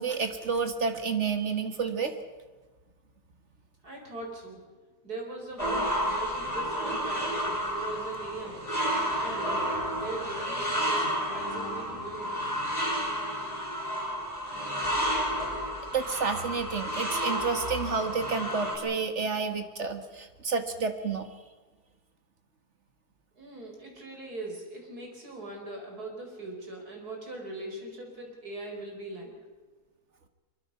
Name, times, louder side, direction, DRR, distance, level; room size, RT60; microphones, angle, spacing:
voice 1, 0.0-2.1 15.9-21.3, right 5 dB, 50° right, 7 dB, 2.0 m, -30 dB
voice 2, 3.8-4.6 5.0-8.6 9.2-9.6 9.9-12.4 23.4-29.3, right 2 dB, 80° right, 1 dB, 5.5 m, -40 dB
sound 1, 5.6-18.8, equal, 20° left, 5.8 m, -31 dB
sound 2, 6.8-12.7, left 1 dB, 30° right, 8.2 m, -47 dB
24.0 x 23.5 x 5.7 m, 1.3 s
omnidirectional pair, 1.6 m